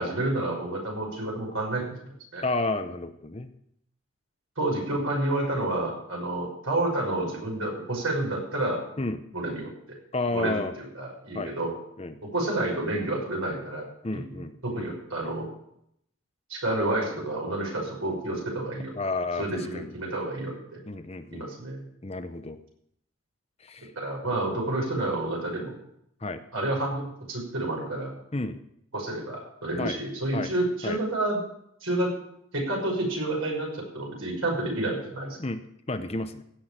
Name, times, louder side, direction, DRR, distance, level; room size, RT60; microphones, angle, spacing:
voice 1, 0.0-2.0 2.3-2.4 4.6-8.8 9.3-9.7 10.3-11.7 12.2-13.9 14.1-14.2 14.6-15.5 16.5-18.9 19.4-20.5 21.3-21.8 24.0-25.7 26.5-28.1 28.9-31.4 31.8-32.2 32.5-35.4, right 2 dB, 80° right, -1 dB, 5.7 m, -29 dB
voice 2, 2.4-3.5 9.0-9.2 10.1-10.8 11.3-11.7 12.0-12.2 14.0-14.9 19.0-19.5 19.7-20.0 20.9-21.5 22.0-22.6 23.6-23.9 26.2-26.4 28.3-28.6 29.8-30.0 30.3-30.5 30.8-31.0 35.4-36.4, left 2 dB, 30° left, 9 dB, 0.8 m, -31 dB
16.0 x 6.2 x 8.9 m, 0.74 s
head